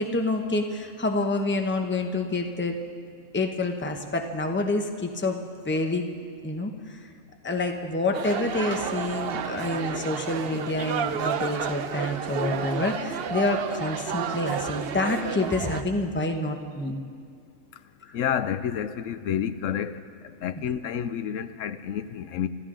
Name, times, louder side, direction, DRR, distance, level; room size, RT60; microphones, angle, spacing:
voice 1, 0.0-2.7 3.3-6.1 6.4-6.7 7.4-17.0, left 2 dB, 10° left, 4 dB, 0.8 m, -27 dB
sound 1, 8.1-15.8, right 7 dB, 55° right, 0.7 m, -31 dB
voice 2, 18.1-20.0 20.4-22.5, left 9 dB, 70° left, 12 dB, 0.9 m, -29 dB
25.5 x 13.0 x 3.8 m, 2.1 s
omnidirectional pair, 1.4 m